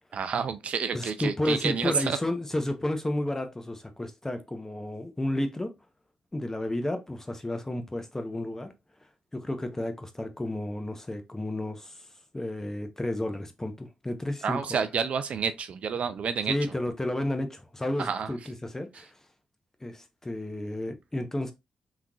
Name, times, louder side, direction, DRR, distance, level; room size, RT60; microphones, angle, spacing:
voice 1, 0.1-2.2 14.4-16.5 18.0-18.3, right 6 dB, 60° right, 0.4 m, -29 dB
voice 2, 0.9-5.7 6.3-8.7 9.3-12.1 12.3-14.9 16.5-19.2 19.8-21.5, left 1 dB, 20° left, 1.0 m, -32 dB
3.5 x 3.0 x 2.5 m
hypercardioid pair, 45°, 2 cm